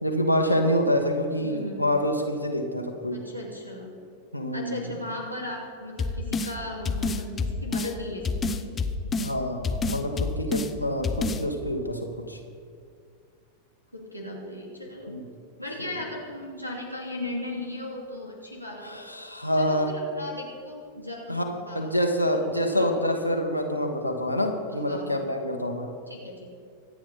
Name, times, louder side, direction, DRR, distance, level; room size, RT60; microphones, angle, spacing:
voice 1, 0.0-3.2 4.3-4.9 9.2-12.4 15.1-15.3 18.8-19.9 21.3-25.9, equal, 90° left, 1 dB, 1.4 m, -27 dB
voice 2, 1.3-1.8 3.1-4.0 4.5-8.7 13.9-15.2 15.6-19.0 19.5-22.0 22.3-22.9 24.8-25.3 26.1-26.5, left 1 dB, 90° right, 0 dB, 2.8 m, -37 dB
sound 1, 6.0-6.5 6.9-7.9 8.2-9.3 9.6-10.7 11.0-11.4, left 4 dB, 20° left, 0.8 m, -27 dB
24.5 x 8.7 x 4.2 m, 2.2 s
figure-of-eight pair, 90°, 0 cm